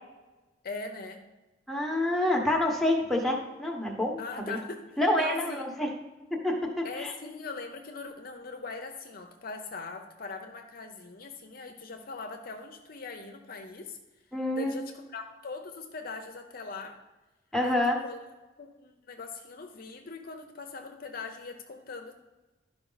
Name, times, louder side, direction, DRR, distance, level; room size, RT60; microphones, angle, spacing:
voice 1, 0.6-1.2 4.2-4.9 5.2-5.6 6.8-14.0 14.5-17.0 17.6-17.7 18.0-18.2 18.6-22.1, left 4 dB, 50° left, 4 dB, 0.7 m, -41 dB
voice 2, 1.7-4.6 5.0-5.9 6.3-7.1 14.3-14.8 17.5-18.0, left 1 dB, ahead, 0 dB, 1.1 m, -28 dB
11.5 x 5.0 x 4.0 m, 1.1 s
head